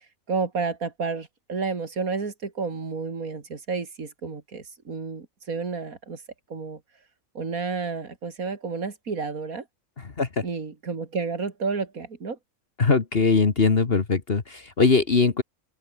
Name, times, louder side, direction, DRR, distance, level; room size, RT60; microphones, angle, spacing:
voice 1, 0.3-6.2 6.5-6.8 7.3-9.6 10.4-12.4, right 4 dB, 90° right, 3.0 m, -31 dB
voice 2, 12.8-15.4, left 4 dB, 45° left, 1.8 m, -21 dB
omnidirectional pair, 1.4 m